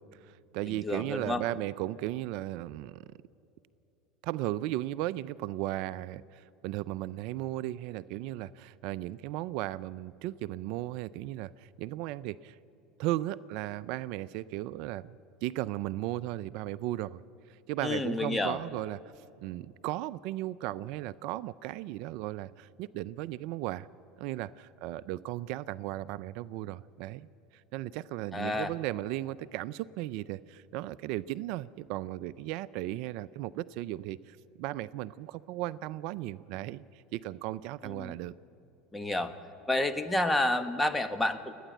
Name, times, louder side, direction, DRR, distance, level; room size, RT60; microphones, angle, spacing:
voice 1, 0.1-3.0 4.2-12.6 13.0-17.2 17.5-23.9 24.2-27.3 27.5-38.3, right 15 dB, 65° right, 17 dB, 0.4 m, -36 dB
voice 2, 0.8-1.4 17.8-18.6 28.3-28.7 37.8-38.1 38.9-39.3 39.7-41.5, left 2 dB, 10° left, 9 dB, 1.3 m, -29 dB
28.5 x 10.0 x 9.1 m, 2.8 s
hypercardioid pair, 90°, 0 cm